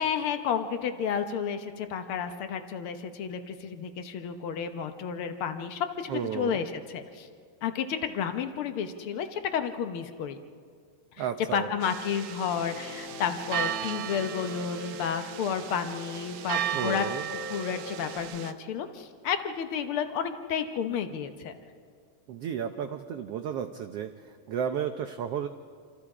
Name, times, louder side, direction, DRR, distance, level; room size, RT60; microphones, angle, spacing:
voice 1, 0.0-7.3 7.6-10.4 11.5-17.1 17.3-21.5, left 7 dB, 75° left, 7 dB, 1.2 m, -31 dB
voice 2, 6.1-6.6 11.2-11.7 16.7-17.3 22.3-24.1 24.5-25.5, right 8 dB, 90° right, 7 dB, 1.3 m, -32 dB
sound 1, 11.8-18.5, right 11 dB, 70° right, 2.0 m, -36 dB
Piano, 12.5-18.2, left 3 dB, 60° left, 3.1 m, -43 dB
28.0 x 26.5 x 4.9 m, 2.1 s
omnidirectional pair, 3.8 m